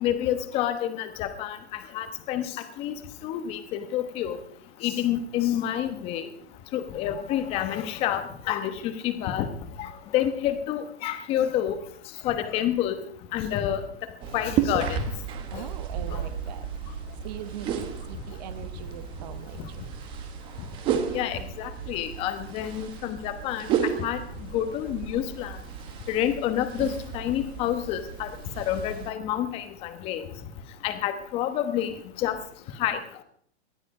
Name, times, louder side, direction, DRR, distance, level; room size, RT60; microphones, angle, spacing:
voice 1, 0.0-1.6 1.9-2.4 2.8-2.9 3.2-4.4 4.8-6.3 6.7-8.2 8.5-9.5 9.8-11.8 12.2-12.9 13.3-13.8 14.3-15.0 15.5-15.6 21.1-23.7 24.0-24.2 24.5-25.5 26.1-28.3 28.7-29.6 30.0-30.2 30.8-31.9 32.2-32.4 32.8-33.0, left 11 dB, 15° left, 9 dB, 1.1 m, -28 dB
sound 1, 14.2-29.1, right 8 dB, 15° right, 0.9 m, -33 dB
voice 2, 15.5-17.7 18.1-19.8, right 10 dB, 40° right, 11 dB, 1.0 m, -41 dB
19.0 x 12.5 x 4.9 m, 0.62 s
hypercardioid pair, 165°, 34 cm